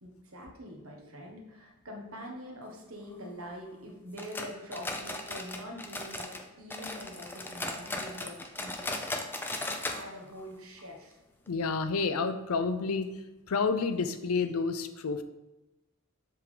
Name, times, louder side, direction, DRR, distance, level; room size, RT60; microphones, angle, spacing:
voice 1, 0.0-9.0 9.8-11.2, equal, 70° right, 0 dB, 1.5 m, -45 dB
sound 1, 4.2-6.4 6.7-10.0 10.3-10.4 10.8-10.9 11.5-11.6, left 2 dB, 10° left, 0.5 m, -37 dB
voice 2, 11.5-13.1 13.5-15.2, left 4 dB, 75° left, 10 dB, 0.5 m, -29 dB
7.5 x 3.7 x 5.0 m, 1.0 s
head